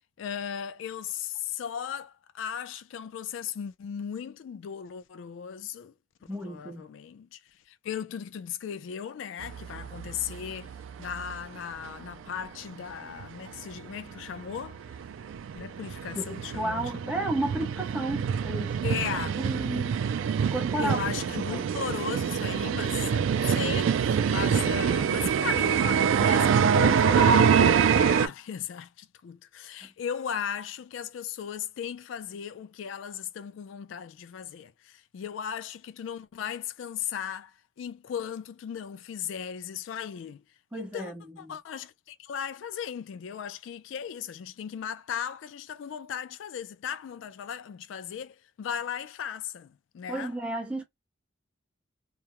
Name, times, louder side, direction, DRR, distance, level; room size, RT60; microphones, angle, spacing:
voice 1, 0.2-5.9 6.4-10.7 11.0-15.0 15.6-17.1 18.8-19.4 20.8-40.4 40.7-50.4, left 8 dB, 70° left, 0.3 m, -37 dB
voice 2, 6.3-6.9 16.2-19.0 19.4-20.0 20.4-21.0 21.5-21.7 29.8-29.9 40.7-41.5 50.1-50.8, right 1 dB, 5° right, 0.7 m, -33 dB
sound 1, 9.4-11.5 11.8-11.9 12.4-12.5 12.8-12.9 13.2-28.3, right 7 dB, 80° right, 0.3 m, -25 dB
2.3 x 2.0 x 2.9 m
head